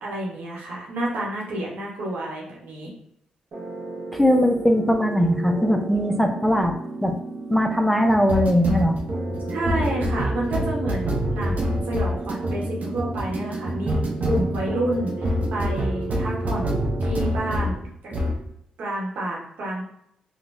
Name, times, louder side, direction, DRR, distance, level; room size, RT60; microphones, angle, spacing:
voice 1, 0.0-2.9 9.5-14.0 14.2-18.1 18.8-19.8, right 1 dB, 75° right, -3 dB, 1.0 m, -29 dB
sound 1, 3.5-17.8 18.1-18.4, right 1 dB, 60° right, 0.6 m, -27 dB
voice 2, 4.1-6.7 7.0-7.2 7.5-9.0, equal, 5° left, 4 dB, 0.5 m, -20 dB
3.8 x 2.2 x 2.5 m, 0.74 s
supercardioid pair, 60°, 3 cm